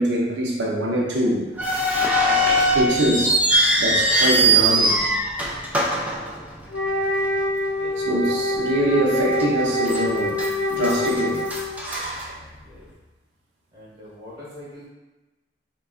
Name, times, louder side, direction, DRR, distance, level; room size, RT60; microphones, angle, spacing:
voice 1, 0.0-1.4 2.2-3.4 3.8-5.0 8.0-10.4 10.7-11.5 11.9-12.4, right 1 dB, 85° right, -2 dB, 0.6 m, -24 dB
sound 1, 1.6-6.9 7.2-7.3 8.0-8.2 8.7-8.8 9.4-10.0 10.3-12.8, right 1 dB, 10° right, 0.4 m, -21 dB
Wind instrument woodwind instrument, 6.7-11.9, left 1 dB, 80° left, 0.6 m, -25 dB
voice 2, 7.8-8.8 12.6-12.8 13.7-14.9, left 1 dB, 25° right, -9 dB, 0.9 m, -43 dB
3.6 x 2.2 x 2.4 m, 1.1 s
head